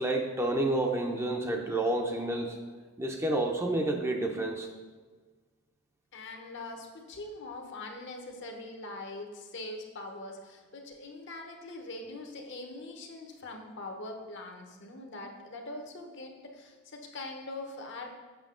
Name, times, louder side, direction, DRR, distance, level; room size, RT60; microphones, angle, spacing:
voice 1, 0.0-2.6 3.0-4.7, right 1 dB, 15° right, 2 dB, 0.6 m, -29 dB
voice 2, 6.1-18.2, left 2 dB, 60° left, 3 dB, 1.0 m, -42 dB
7.4 x 6.2 x 3.8 m, 1.4 s
head